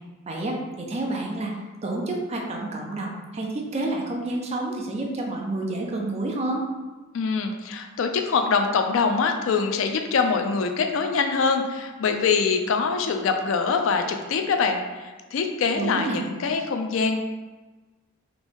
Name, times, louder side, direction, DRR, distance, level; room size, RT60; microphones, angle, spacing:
voice 1, 0.3-1.5 1.8-6.6 15.7-16.2, right 2 dB, 30° right, 0 dB, 0.4 m, -29 dB
voice 2, 7.1-17.2, left 5 dB, 70° left, 5 dB, 0.4 m, -24 dB
2.9 x 2.6 x 3.4 m, 1.2 s
head